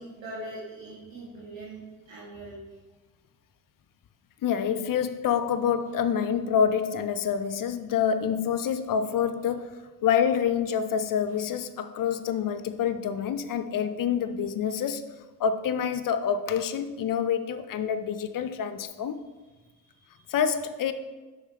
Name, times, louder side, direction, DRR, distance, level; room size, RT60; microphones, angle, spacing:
voice 1, 0.0-1.8 2.1-2.6 14.6-14.7 19.4-19.5 19.8-20.7, right 1 dB, 70° right, -8 dB, 1.9 m, -42 dB
voice 2, 4.4-15.0 15.4-19.2 20.3-20.9, left 7 dB, 45° left, 10 dB, 0.6 m, -27 dB
5.4 x 3.8 x 4.9 m, 1.3 s
hypercardioid pair, 55°, 47 cm